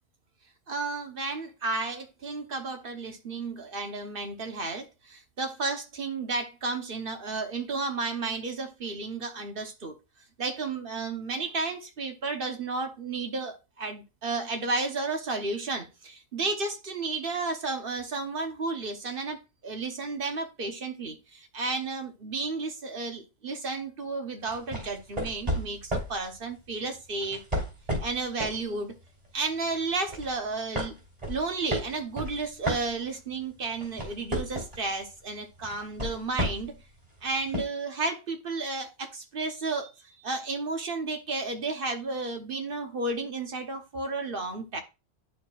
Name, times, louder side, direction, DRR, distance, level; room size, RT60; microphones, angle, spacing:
voice 1, 0.7-10.0 10.4-27.4 28.0-29.0 29.3-30.9 31.2-36.8 37.2-44.8, right 3 dB, 60° right, 1.2 m, -32 dB
sound 1, 24.5-26.2 27.2-28.6 29.0-29.3 29.7-30.3 30.7-33.3 33.7-34.9 35.6-36.8 37.5-37.6, equal, 35° right, 3.2 m, -32 dB
11.0 x 4.5 x 2.3 m
omnidirectional pair, 1.1 m